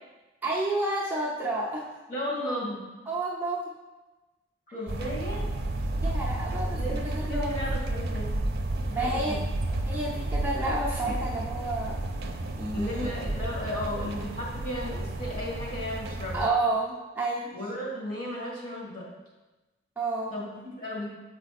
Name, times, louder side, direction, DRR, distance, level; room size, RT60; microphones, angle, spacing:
voice 1, 0.4-1.9 3.1-3.7 6.0-7.6 9.0-9.4 9.7-12.0 12.6-13.1 16.3-17.5 20.0-20.3, right 2 dB, 10° right, -6 dB, 0.7 m, -30 dB
voice 2, 2.1-2.8 4.7-5.5 6.6-8.5 8.8-9.4 12.7-16.4 17.5-19.1 20.3-21.1, left 1 dB, 45° left, -4 dB, 2.0 m, -35 dB
sound 1, 4.9-16.5, right 1 dB, 55° right, 0.7 m, -32 dB
7.3 x 4.9 x 4.2 m, 1.1 s
head